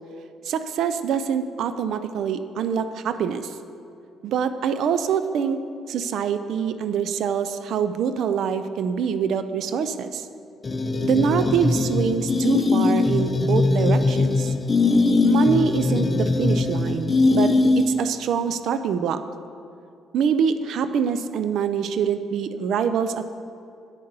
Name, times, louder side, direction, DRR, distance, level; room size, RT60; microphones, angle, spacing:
voice 1, 0.4-3.5 4.2-5.6 5.9-10.3 11.0-14.5 15.2-19.2 20.1-23.3, right 7 dB, 70° right, 11 dB, 0.4 m, -25 dB
sound 1, 10.6-18.1, left 3 dB, 35° left, 0.6 m, -21 dB
8.3 x 6.5 x 5.4 m, 2.5 s
supercardioid pair, 70°, 0 cm